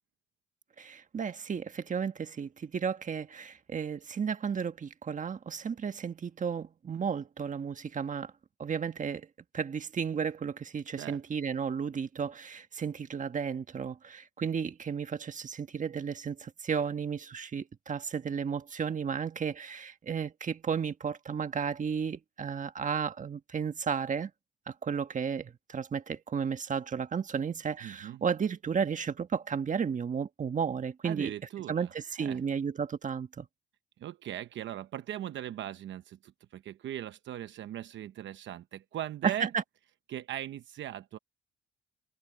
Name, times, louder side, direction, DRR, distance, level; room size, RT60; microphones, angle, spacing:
voice 1, 0.8-8.3 8.6-9.3 9.5-24.3 24.8-31.3 31.7-33.4 39.2-39.6, right 6 dB, 40° right, 1.5 m, -33 dB
voice 2, 27.8-28.2 31.0-32.4 34.0-39.5 40.1-41.2, right 12 dB, 70° right, 0.9 m, -39 dB
cardioid pair, 90°, 20 cm